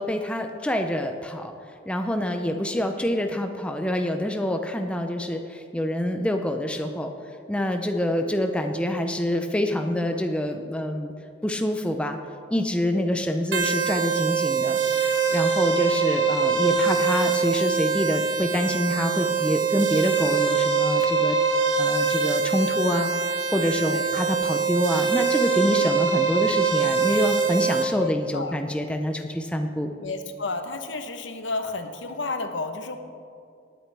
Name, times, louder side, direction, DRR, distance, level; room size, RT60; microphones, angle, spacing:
voice 1, 0.0-1.5 1.9-7.1 7.5-11.1 11.4-12.2 12.5-21.4 21.8-23.1 23.5-29.9, left 1 dB, 5° left, 5 dB, 0.5 m, -26 dB
sound 1, 13.5-27.8, right 5 dB, 70° right, 1.2 m, -23 dB
voice 2, 28.0-28.6 30.0-33.0, left 3 dB, 70° left, 7 dB, 0.9 m, -32 dB
18.5 x 9.1 x 3.4 m, 2.4 s
head